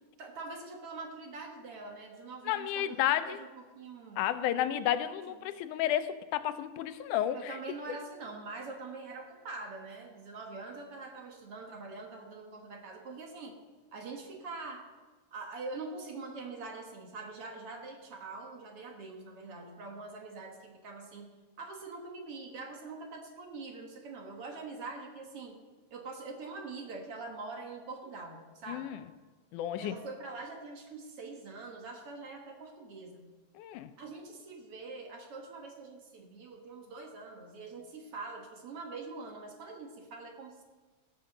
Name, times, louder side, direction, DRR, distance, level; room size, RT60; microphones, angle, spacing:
voice 1, 0.2-4.2 5.4-5.5 7.3-13.6 13.9-14.9 15.3-21.3 21.6-25.6 25.9-28.9 29.8-33.2 34.0-40.6, right 3 dB, 55° right, 2 dB, 2.1 m, -44 dB
voice 2, 2.5-3.4 4.2-7.6 28.7-29.0 29.5-29.9 33.6-33.9, left 11 dB, 90° left, 12 dB, 2.2 m, -31 dB
15.5 x 7.0 x 6.6 m, 1.3 s
omnidirectional pair, 3.5 m